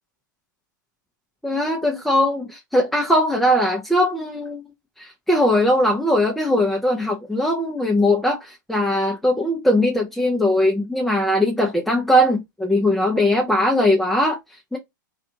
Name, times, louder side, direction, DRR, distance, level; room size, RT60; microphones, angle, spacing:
voice 1, 1.4-4.6 5.0-14.8, left 1 dB, ahead, 0.6 m, -20 dB
2.4 x 2.3 x 2.7 m
hypercardioid pair, 105°, 11 cm